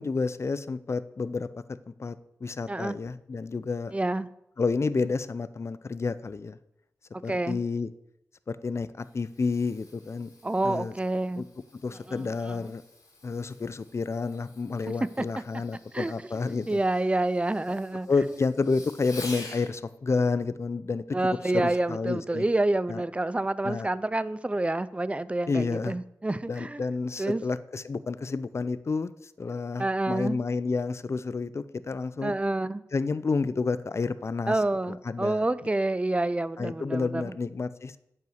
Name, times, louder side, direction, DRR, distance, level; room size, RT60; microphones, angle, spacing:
voice 1, 0.0-1.5 2.0-3.9 4.6-6.6 7.2-7.9 8.5-10.3 10.6-10.9 11.4-11.5 11.8-12.8 13.2-16.8 18.1-21.2 21.5-22.4 22.9-23.0 23.6-23.9 25.5-26.0 26.5-32.3 32.9-35.4 36.6-37.9, left 4 dB, 45° left, 0.5 m, -30 dB
voice 2, 3.9-4.3 7.3-7.6 10.4-11.4 12.1-12.6 15.2-15.3 15.9-16.1 16.7-18.1 21.1-26.8 27.2-27.4 29.8-30.4 32.2-32.8 34.5-37.3, right 2 dB, 20° right, 0.5 m, -28 dB
Fireworks, 8.9-19.7 21.7-22.0 22.6-22.7, left 2 dB, 65° left, 3.3 m, -49 dB
8.9 x 5.6 x 8.0 m
wide cardioid pair, 70°, 6 cm